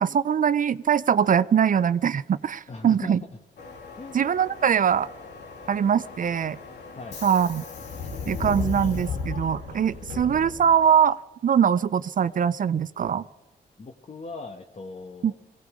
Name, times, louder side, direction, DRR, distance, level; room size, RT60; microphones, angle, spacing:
voice 1, 0.0-3.2 4.1-5.1 5.7-6.6 7.2-7.6 8.3-13.2 15.2-15.3, right 8 dB, 50° right, 16 dB, 0.5 m, -22 dB
voice 2, 2.7-3.2 4.0-4.2 7.0-7.2 13.8-15.3, left 3 dB, 40° left, 4 dB, 1.2 m, -39 dB
Subway metro underground, 3.6-11.0, left 4 dB, 90° left, 2.2 m, -36 dB
18.0 x 16.0 x 5.0 m, 1.1 s
cardioid pair, 65°, 17 cm